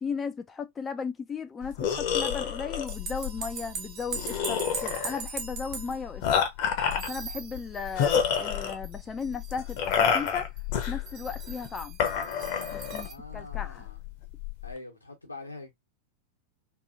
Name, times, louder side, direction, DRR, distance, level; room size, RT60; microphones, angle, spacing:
voice 1, 0.0-6.4 6.9-10.5 10.9-12.0 12.7-13.1 13.3-13.9, left 5 dB, 20° left, 0.3 m, -36 dB
sound 1, 1.6-14.7, left 7 dB, 45° left, 0.7 m, -30 dB
sound 2, 2.9-6.3 6.8-8.2 8.8-13.1, right 6 dB, 35° right, 0.7 m, -40 dB
voice 2, 12.9-14.0 14.6-15.7, left 2 dB, 85° left, 1.0 m, -44 dB
2.8 x 2.6 x 2.5 m
figure-of-eight pair, 90°, 0 cm